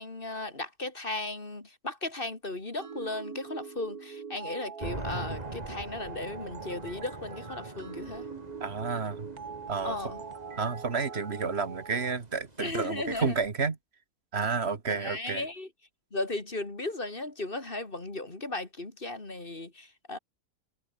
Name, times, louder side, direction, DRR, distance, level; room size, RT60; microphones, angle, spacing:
voice 1, 0.0-8.3 9.8-10.2 12.6-13.4 14.9-15.7 16.1-20.2, left 2 dB, 35° left, 2.9 m, -36 dB
sound 1, 2.8-12.2, right 6 dB, 75° right, 2.5 m, -43 dB
sound 2, 4.8-13.5, right 2 dB, 25° right, 3.7 m, -44 dB
voice 2, 8.6-9.3 9.7-10.0 10.6-13.8 14.3-15.5, right 5 dB, 45° right, 2.1 m, -30 dB
omnidirectional pair, 1.6 m